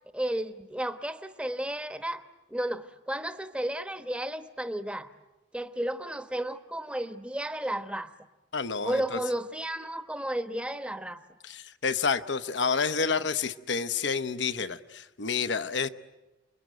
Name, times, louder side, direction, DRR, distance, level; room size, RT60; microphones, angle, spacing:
voice 1, 0.1-5.1 5.5-8.1 8.8-11.2, right 1 dB, 5° right, 9 dB, 1.1 m, -33 dB
voice 2, 8.5-9.2 11.4-15.9, left 5 dB, 65° left, 11 dB, 0.9 m, -29 dB
29.0 x 22.0 x 9.3 m, 1.1 s
head